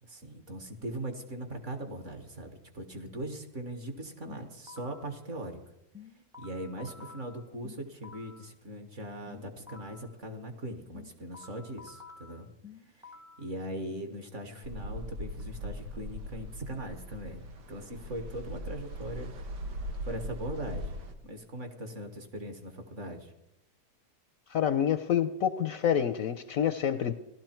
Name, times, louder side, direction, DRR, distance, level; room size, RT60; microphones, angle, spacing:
voice 1, 0.0-5.6 6.4-12.5 13.4-19.3 20.1-23.3, right 1 dB, 45° right, 6 dB, 1.7 m, -40 dB
sound 1, 4.3-5.1 5.9-8.5 9.3-10.1 10.9-13.5, left 5 dB, 5° right, 0.5 m, -51 dB
sound 2, 14.6-21.1, equal, 80° right, 1.9 m, -40 dB
voice 2, 24.5-27.1, left 9 dB, 65° left, 11 dB, 0.9 m, -27 dB
16.0 x 12.5 x 4.4 m, 0.89 s
omnidirectional pair, 1.8 m